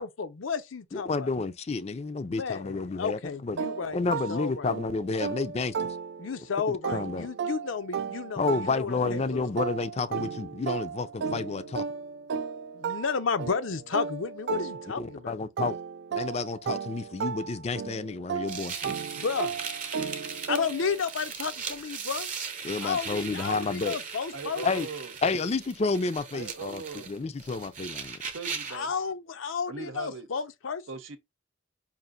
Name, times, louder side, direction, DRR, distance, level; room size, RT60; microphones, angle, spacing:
voice 1, 0.0-1.3 2.3-4.7 6.2-9.5 12.7-15.4 19.2-19.6 20.5-22.3 22.8-24.6 28.7-30.8, left 5 dB, 80° left, 0.6 m, -32 dB
voice 2, 0.9-3.6 3.9-5.8 6.7-7.3 8.4-11.8 15.0-15.8 16.1-18.9 22.6-24.0 24.6-24.9 25.2-28.2, left 4 dB, 35° left, 0.4 m, -30 dB
sound 1, 3.6-6.4 6.8-15.2 15.6-21.0, right 6 dB, 60° right, 0.3 m, -35 dB
sound 2, 18.5-28.9, right 6 dB, 40° right, 0.8 m, -38 dB
voice 3, 24.3-25.1 26.3-27.1 28.3-28.9 29.7-30.3 30.9-31.2, right 4 dB, 80° right, 0.7 m, -39 dB
5.4 x 2.5 x 2.5 m
head